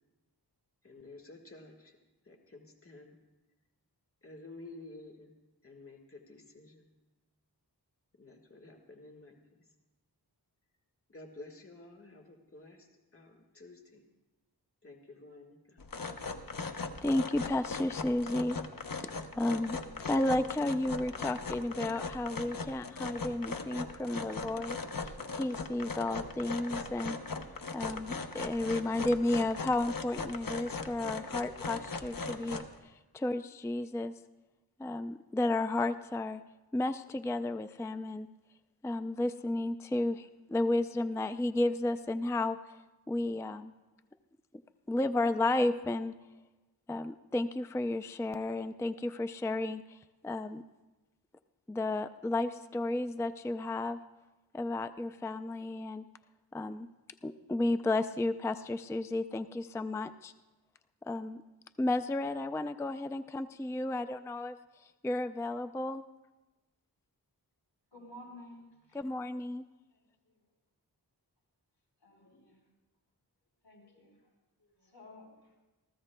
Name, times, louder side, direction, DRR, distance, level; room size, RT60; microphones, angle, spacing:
voice 1, 0.8-2.0 2.2-3.2 4.2-5.3 5.6-6.9 8.2-9.6 11.1-14.1 14.8-15.8, left 2 dB, 35° left, 1 dB, 1.5 m, -52 dB
sound 1, 15.8-32.7, left 4 dB, 55° left, 0.9 m, -39 dB
voice 2, 17.0-19.8 20.1-27.2 27.7-34.1 34.8-36.4 36.7-38.3 38.8-42.6 43.1-43.7 44.9-46.1 46.9-50.0 50.2-50.6 51.7-54.0 54.5-56.1 56.5-56.9 57.2-60.3 61.0-61.4 61.8-64.6 65.0-66.0 68.9-69.6, left 2 dB, 10° left, 10 dB, 0.3 m, -33 dB
voice 3, 67.9-68.6 68.9-69.0 72.0-72.6 73.6-74.2 74.8-75.3, left 1 dB, 85° left, -1 dB, 4.4 m, -52 dB
27.5 x 14.5 x 2.2 m, 1.1 s
wide cardioid pair, 80°, 40 cm